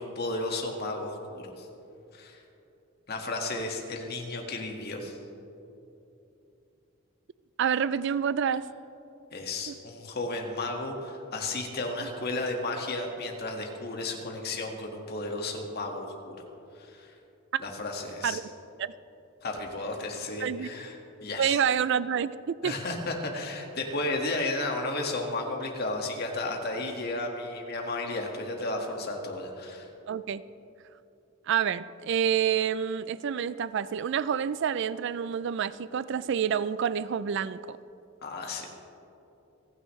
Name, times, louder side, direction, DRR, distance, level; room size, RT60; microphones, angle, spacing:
voice 1, 0.0-1.7 2.1-2.4 3.1-5.2 9.3-16.4 16.8-17.1 17.6-18.4 19.4-21.6 22.6-29.9 38.2-38.7, left 2 dB, 55° left, 2 dB, 1.8 m, -33 dB
voice 2, 7.6-8.7 9.7-9.8 17.5-17.6 18.2-18.4 18.8-18.9 20.4-20.7 21.4-22.8 30.1-30.4 31.5-37.8, right 8 dB, 65° right, 17 dB, 0.4 m, -28 dB
29.0 x 9.8 x 3.2 m, 2.9 s
head